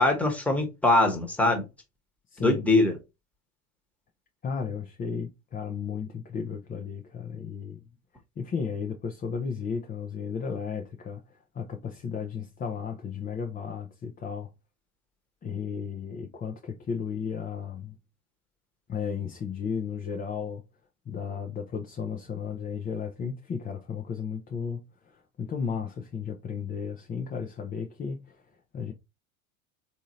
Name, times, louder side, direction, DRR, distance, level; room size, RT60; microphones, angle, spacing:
voice 1, 0.0-1.6 2.4-3.0, left 2 dB, 5° left, 1.2 m, -22 dB
voice 2, 2.3-2.6 4.4-7.8 8.4-14.5 15.4-18.0 18.9-20.6 21.1-28.4 28.7-28.9, left 6 dB, 20° left, 0.6 m, -34 dB
3.6 x 2.8 x 3.0 m
hypercardioid pair, 90°, 41 cm